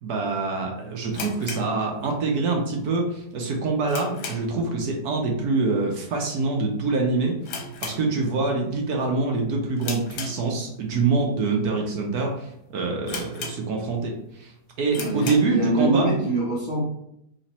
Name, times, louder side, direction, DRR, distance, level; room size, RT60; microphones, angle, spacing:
voice 1, 0.0-14.5 14.8-16.2, right 3 dB, 70° right, 1 dB, 1.2 m, -25 dB
sound 1, 1.1-2.5 2.7-2.8 3.3-4.7 5.0-5.3 5.6-5.7 6.3-6.6 6.9-7.0 7.4-8.6 8.9-9.2 9.8-10.9 11.5-11.6 12.2-12.3 12.5-12.6 13.1-14.0 14.4-14.5 14.9-15.6, left 4 dB, 85° left, 1.4 m, -36 dB
voice 2, 14.9-16.8, right 1 dB, 25° left, -7 dB, 1.2 m, -24 dB
3.3 x 3.1 x 4.1 m, 0.77 s
omnidirectional pair, 1.8 m